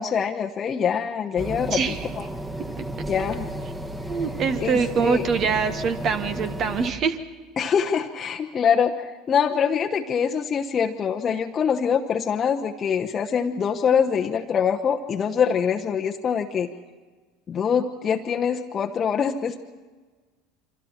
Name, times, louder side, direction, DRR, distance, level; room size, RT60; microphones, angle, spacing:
voice 1, 0.0-1.8 2.1-2.3 3.1-3.5 4.6-5.2 7.6-16.7 17.5-19.6, left 7 dB, 35° left, 2 dB, 1.0 m, -24 dB
sound 1, 1.4-6.9, right 1 dB, 15° right, 1.9 m, -33 dB
voice 2, 4.1-7.2, right 5 dB, 45° right, 9 dB, 1.6 m, -24 dB
28.0 x 24.5 x 4.4 m, 1.4 s
figure-of-eight pair, 70°, 0 cm